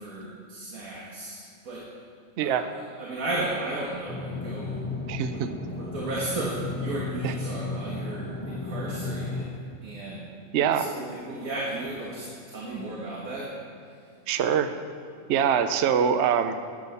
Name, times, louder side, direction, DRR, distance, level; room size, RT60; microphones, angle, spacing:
voice 1, 0.0-1.9 2.4-5.0 5.3-5.4 5.7-9.5 9.8-10.3 10.7-13.6, right 2 dB, 80° right, -4 dB, 1.8 m, -34 dB
voice 2, 2.4-2.7 5.1-5.5 7.2-7.3 10.5-10.9 14.3-14.7 15.3-16.6, right 8 dB, 60° right, 10 dB, 0.8 m, -24 dB
sound 1, 4.1-9.5, left 3 dB, 10° left, 0.9 m, -34 dB
11.0 x 8.5 x 5.5 m, 2.4 s
omnidirectional pair, 1.5 m